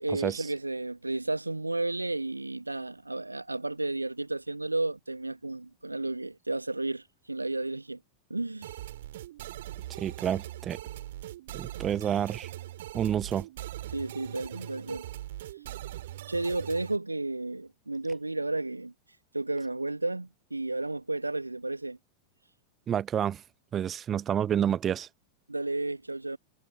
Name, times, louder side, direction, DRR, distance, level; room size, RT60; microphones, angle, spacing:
voice 1, 0.0-8.0 8.3-8.8 13.9-15.1 15.4-15.6 16.3-22.0 25.5-26.4, right 2 dB, 85° right, 1.0 m, -32 dB
sound 1, 8.6-17.0, right 14 dB, 55° right, 2.6 m, -41 dB
voice 2, 10.0-10.8 11.5-12.5 12.9-13.5 22.9-23.4 23.7-25.1, right 9 dB, 25° right, 0.7 m, -29 dB
figure-of-eight pair, 90°, 0 cm